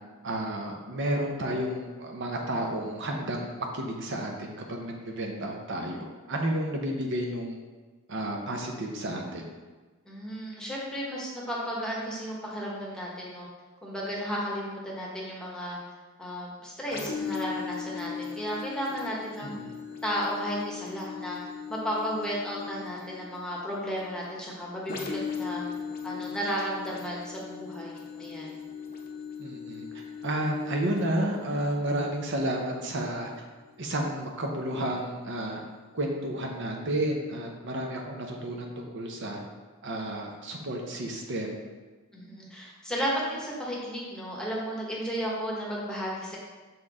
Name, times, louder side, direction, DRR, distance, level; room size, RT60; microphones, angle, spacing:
voice 1, 0.2-7.6 8.1-9.5 19.4-19.7 29.4-33.3 33.8-35.6 35.9-39.4 39.8-41.5, right 1 dB, 55° right, 1 dB, 0.7 m, -31 dB
voice 2, 10.0-13.5 13.8-15.8 16.2-19.5 20.0-25.7 26.0-28.6 42.1-46.4, equal, 5° left, -4 dB, 1.1 m, -34 dB
sound 1, 16.9-34.4 35.0-35.1, left 6 dB, 40° left, 0.7 m, -39 dB
6.4 x 4.4 x 3.6 m, 1.3 s
head